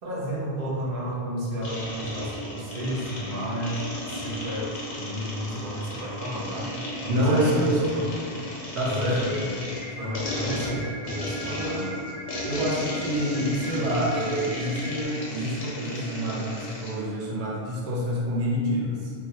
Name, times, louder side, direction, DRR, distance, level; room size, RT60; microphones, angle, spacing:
voice 1, 0.0-8.1 8.8-9.5 9.9-12.0 15.3-15.4, equal, 65° right, -7 dB, 0.8 m, -32 dB
sound 1, 1.6-17.0, left 1 dB, 55° left, 0.5 m, -35 dB
voice 2, 7.1-8.0 8.7-9.2 11.4-11.9 12.4-19.1, equal, 90° right, -4 dB, 0.8 m, -27 dB
sound 2, 9.2-15.1, right 1 dB, 25° right, 0.5 m, -40 dB
2.1 x 2.1 x 2.7 m, 2.2 s
omnidirectional pair, 1.1 m